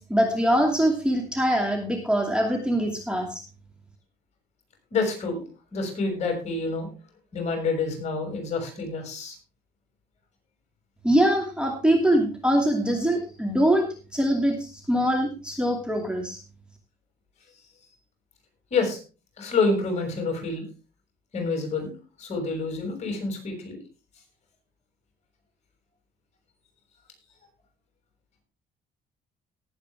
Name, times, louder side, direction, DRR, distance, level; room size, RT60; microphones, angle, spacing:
voice 1, 0.1-3.4 11.0-13.9 14.1-16.4, right 1 dB, 5° right, 2 dB, 2.6 m, -23 dB
voice 2, 4.9-6.9 7.3-9.3 18.7-19.0 19.4-20.6 21.3-21.9 22.2-23.8, left 3 dB, 40° left, 3 dB, 6.6 m, -28 dB
18.5 x 8.2 x 3.6 m, 0.33 s
cardioid pair, 110°, 17 cm